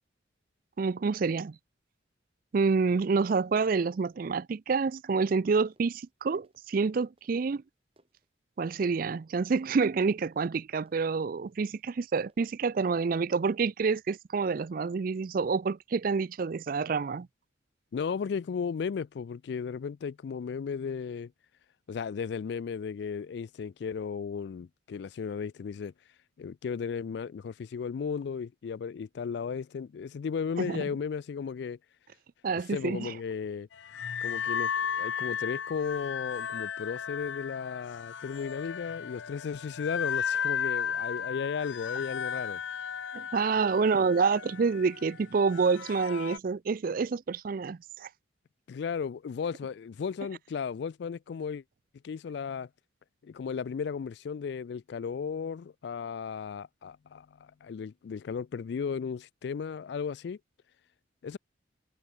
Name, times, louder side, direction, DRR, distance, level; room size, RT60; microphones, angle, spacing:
voice 1, 0.8-1.6 2.5-7.6 8.6-17.3 30.6-30.8 32.4-33.1 43.1-48.1, right 4 dB, 45° right, 0.4 m, -28 dB
sound 1, 5.7-7.6 8.0-12.6, right 1 dB, 30° right, 5.9 m, -69 dB
voice 2, 17.9-21.3 21.9-25.9 26.4-31.8 32.7-33.7 34.2-42.6 48.7-51.6 52.0-52.7 53.2-60.4 61.2-61.4, left 6 dB, 60° left, 0.3 m, -35 dB
sound 2, 33.7-46.4, left 7 dB, 75° left, 0.7 m, -35 dB
head